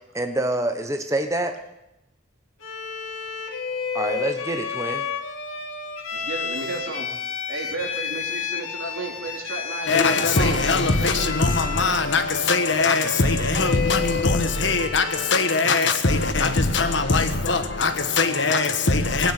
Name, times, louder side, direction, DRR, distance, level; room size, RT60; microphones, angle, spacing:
voice 1, 0.1-1.6 3.9-5.1, right 1 dB, 15° right, 6 dB, 1.1 m, -26 dB
Bowed string instrument, 2.6-15.8, left 6 dB, 85° left, 2.3 m, -31 dB
voice 2, 6.1-7.1 7.5-11.3, right 3 dB, 90° right, 1 dB, 3.6 m, -33 dB
voice 3, 9.9-19.3, left 3 dB, 60° left, 8 dB, 1.4 m, -21 dB
18.0 x 9.3 x 8.4 m, 0.89 s
head